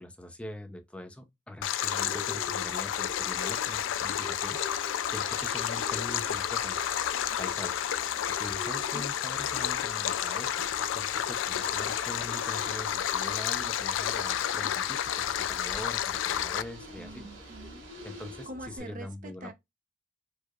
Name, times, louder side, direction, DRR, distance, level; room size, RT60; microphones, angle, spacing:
voice 1, 0.0-6.8 7.4-7.8 8.3-10.7 10.9-17.3 18.0-19.5, left 1 dB, 5° left, 0.5 m, -43 dB
Stream, 1.6-16.6, left 10 dB, 90° left, 0.3 m, -31 dB
Bird, 1.8-18.8, left 2 dB, 50° left, 1.6 m, -47 dB
Ocean / Boat Water vehicle, 3.1-18.5, right 3 dB, 85° right, 1.8 m, -51 dB
voice 2, 17.0-17.8 18.5-19.5, right 1 dB, 45° right, 0.6 m, -44 dB
4.6 x 2.4 x 2.2 m
head